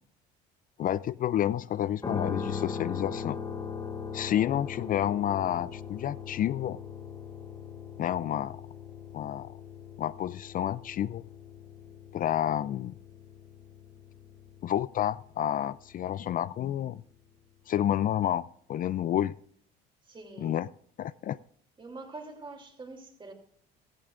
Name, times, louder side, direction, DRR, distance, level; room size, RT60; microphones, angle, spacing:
voice 1, 0.8-3.4 4.1-6.8 8.0-8.6 9.1-9.5 10.0-11.2 12.1-12.9 14.6-17.0 17.7-19.4 20.4-20.7 21.0-21.4, left 11 dB, 45° left, 0.4 m, -29 dB
sound 1, 2.0-16.0, left 6 dB, 20° left, 1.4 m, -40 dB
voice 2, 20.0-20.6 21.8-23.3, right 3 dB, 25° right, 3.0 m, -45 dB
15.5 x 14.0 x 2.5 m
supercardioid pair, 90°, 21 cm